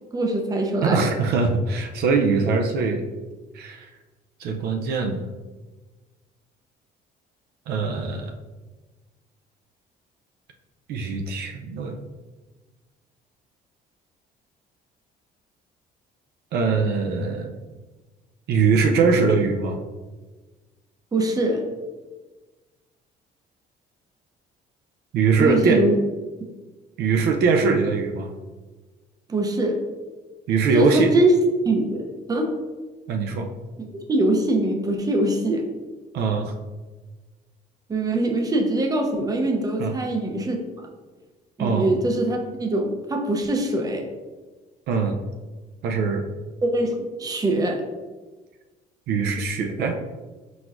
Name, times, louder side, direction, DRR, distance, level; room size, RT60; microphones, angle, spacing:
voice 1, 0.1-1.0 21.1-21.6 25.4-26.0 29.3-29.8 30.7-31.3 31.7-32.5 34.1-35.7 37.9-40.9 41.6-44.1 46.6-47.8, right 2 dB, 20° right, 2 dB, 0.6 m, -23 dB
voice 2, 0.8-3.1 3.5-3.9 4.4-5.2 7.7-8.3 10.9-12.0 16.5-17.6 18.5-19.8 25.1-25.8 27.0-28.3 30.5-31.1 33.1-33.5 36.1-36.5 39.8-39.9 41.6-41.9 44.9-45.2 45.8-46.2 49.1-50.0, right 4 dB, 75° right, 4 dB, 0.5 m, -22 dB
4.4 x 4.1 x 2.5 m, 1.3 s
cardioid pair, 110°, 17 cm